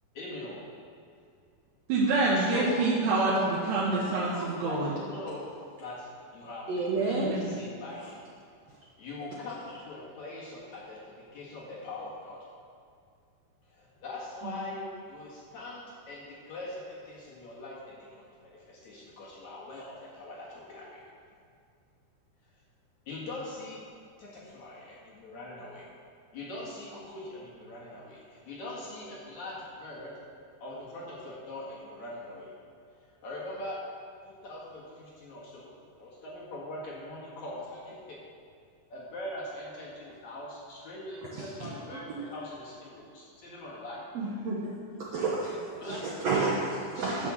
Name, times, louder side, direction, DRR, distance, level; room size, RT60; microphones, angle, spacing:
voice 1, 0.1-0.7 2.4-2.8 3.1-3.6 4.0-5.5 5.8-6.7 7.0-7.3 7.6-8.2 9.0-12.4 13.7-14.8 15.1-21.0 23.1-23.8 24.2-25.9 26.3-30.1 30.6-32.5 33.0-33.8 34.2-38.2 38.9-44.0 45.8-46.3 47.2-47.3, left 2 dB, 50° left, -5 dB, 2.9 m, -42 dB
voice 2, 1.9-4.9 7.0-7.3 14.4-14.5, right 2 dB, 90° right, -6 dB, 3.5 m, -26 dB
voice 3, 6.7-7.3 41.3-41.7 42.1-42.3 44.1-44.7 45.1-46.0 46.2-47.3, right 3 dB, 70° right, -4 dB, 1.5 m, -30 dB
11.0 x 6.7 x 7.2 m, 2.3 s
omnidirectional pair, 4.6 m